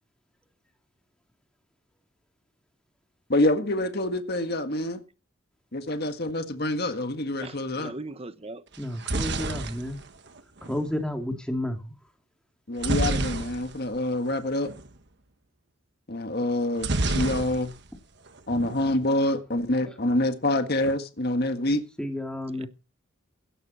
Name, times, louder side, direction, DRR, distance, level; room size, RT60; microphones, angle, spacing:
voice 1, 3.3-5.0 5.7-7.9 12.7-14.7 16.1-17.7 18.5-21.8, left 1 dB, 50° left, 1.7 m, -26 dB
voice 2, 7.4-8.6 22.6-22.7, right 2 dB, 30° right, 1.0 m, -39 dB
sound 1, 8.7-10.9 12.8-14.0 14.3-14.4 14.6-14.9 16.8-18.0 18.3-18.9, right 2 dB, 55° right, 1.4 m, -29 dB
voice 3, 8.8-10.0 10.6-11.9 18.5-18.7 19.9-20.0 22.0-22.7, left 1 dB, 5° left, 2.6 m, -31 dB
16.5 x 12.0 x 4.3 m
head